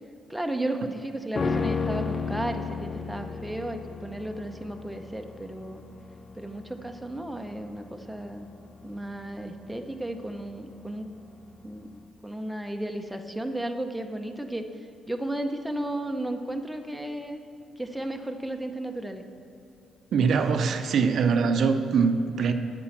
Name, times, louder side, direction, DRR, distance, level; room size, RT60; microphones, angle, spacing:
voice 1, 0.3-5.8 6.3-8.5 8.8-11.1 11.6-14.6 15.1-17.4 17.8-19.2, right 1 dB, 5° right, 5 dB, 0.6 m, -34 dB
sound 1, 1.4-10.7 11.0-11.1, left 4 dB, 40° left, 0.5 m, -34 dB
voice 2, 20.1-22.5, right 5 dB, 65° right, 8 dB, 0.5 m, -23 dB
8.6 x 5.2 x 7.1 m, 2.5 s
cardioid pair, 90°, 0 cm